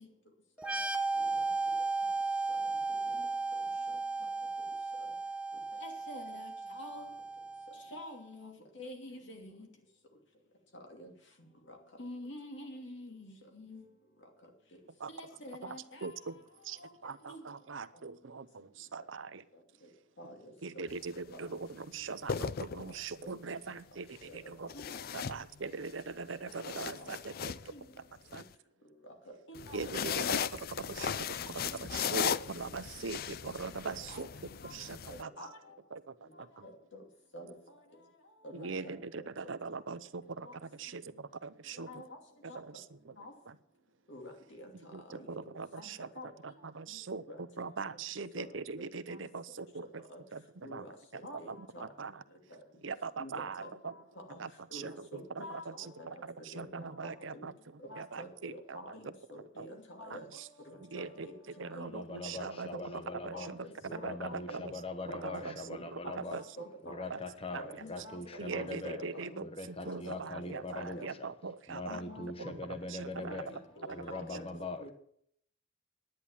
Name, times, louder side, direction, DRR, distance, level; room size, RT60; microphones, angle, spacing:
sound 1, 0.6-8.1, right 3 dB, 5° right, 1.0 m, -35 dB
voice 1, 5.8-7.1 7.9-9.7 10.9-11.1 11.7-13.8 15.1-16.1 16.8-16.9 17.3-17.4 20.2-20.4 20.7-20.8 23.2-23.3 24.3-24.4 24.7-24.8 27.0-27.1 27.7-27.8 29.5-30.4 31.2-31.3 32.3-32.5 33.9-34.3 34.6-34.7 35.1-35.6 36.6-36.7 37.3-37.5 38.4-38.9 41.9-42.0 42.5-42.6 43.2-43.3 44.1-44.7 45.1-45.4 45.8-45.9 46.2-46.3 47.3-47.4 48.4-48.5 49.1-49.2 50.1-50.2 50.6-50.9 51.2-51.8 53.2-53.7 54.3-54.4 54.7-55.6 56.0-56.1 56.4-56.9 57.3-57.5 57.8-60.3 60.7-61.4 61.7-62.0 62.7-62.8 63.1-64.2 64.5-64.6 65.1-65.8 66.0-66.1 66.6-67.1 67.5-68.2 68.5-69.4 69.8-70.0 70.4-71.1 71.9-72.3 73.1-74.5 74.8-74.9, left 1 dB, 65° left, 3 dB, 2.7 m, -47 dB
voice 2, 16.0-16.3 16.6-19.4 20.6-24.7 25.1-27.5 28.3-28.4 29.7-34.3 34.7-35.3 35.9-36.5 38.5-41.9 42.5-43.1 44.9-46.1 46.4-50.0 50.3-50.9 51.1-51.2 51.5-52.1 52.8-53.9 54.4-55.1 55.3-55.4 56.1-57.5 58.0-58.8 59.6-59.7 60.8-61.3 61.6-62.7 63.2-63.6 63.9-64.7 65.1-65.5 65.9-66.4 67.1-67.2 67.5-67.6 68.4-72.0 72.5-72.6 72.9-73.4, right 4 dB, 80° right, 13 dB, 0.8 m, -41 dB
sound 2, 20.9-21.1 22.1-23.2 24.7-25.9 26.3-28.4 29.5-35.2, left 8 dB, 50° left, 0.4 m, -37 dB
voice 3, 61.8-63.5 63.9-66.4 66.8-69.0 69.4-71.3 71.7-73.6 73.9-74.9, left 3 dB, 30° left, 8 dB, 1.0 m, -42 dB
10.5 x 9.8 x 7.3 m, 0.67 s
head